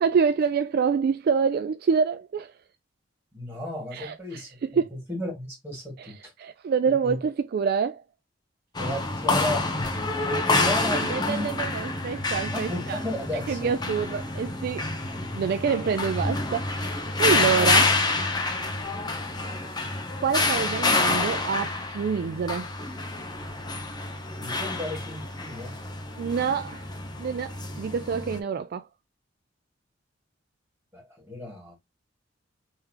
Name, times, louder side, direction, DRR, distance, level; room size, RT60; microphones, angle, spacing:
voice 1, 0.0-2.5 3.9-4.1 4.6-4.9 6.4-8.0 10.9-13.0 13.3-14.9 15.3-16.9 17.2-17.9 20.2-22.7 26.2-26.9 27.2-28.8, right 6 dB, 55° right, 0.3 m, -26 dB
voice 2, 3.3-6.3 6.8-7.2 8.8-11.5 12.5-13.7 15.4-15.5 17.4-17.7 24.4-25.8 30.9-31.7, left 1 dB, 10° right, 2.5 m, -34 dB
sound 1, 8.7-28.4, left 3 dB, 20° left, 0.7 m, -28 dB
3.5 x 3.1 x 3.2 m
head